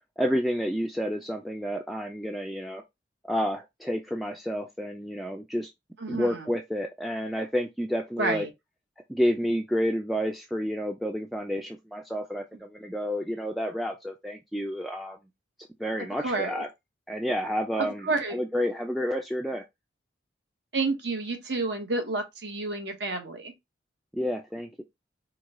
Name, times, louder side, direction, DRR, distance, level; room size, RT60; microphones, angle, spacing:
voice 1, 0.2-2.8 3.2-5.7 6.1-8.4 9.1-15.2 15.8-16.7 17.1-18.0 18.3-19.6 24.1-24.8, equal, ahead, 0.3 m, -30 dB
voice 2, 6.0-6.5 8.2-8.5 16.2-16.6 17.8-18.4 20.7-23.5, right 3 dB, 65° right, 1.2 m, -30 dB
4.7 x 2.3 x 3.6 m
head